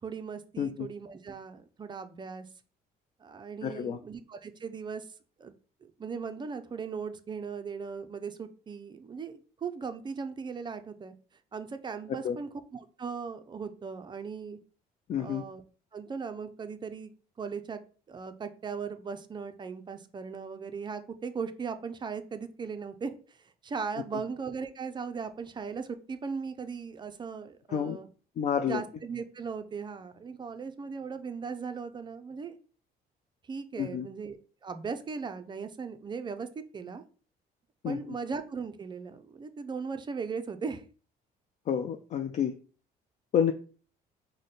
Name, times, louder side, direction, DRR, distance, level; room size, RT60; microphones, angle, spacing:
voice 1, 0.0-2.5 3.2-5.1 5.4-5.5 5.8-11.1 11.5-14.6 15.2-15.6 15.9-17.8 18.1-28.1 28.6-32.6 33.5-34.4 34.6-36.5 36.7-37.0 37.8-40.8, right 5 dB, 25° right, 9 dB, 0.5 m, -38 dB
voice 2, 3.6-4.0 12.2-12.4 15.1-15.4 27.7-28.0 28.4-28.8 33.8-34.1 37.8-38.2 41.7-42.5 43.3-43.5, left 8 dB, 45° left, 6 dB, 0.4 m, -29 dB
4.8 x 2.2 x 4.1 m, 0.39 s
cardioid pair, 110°, 17 cm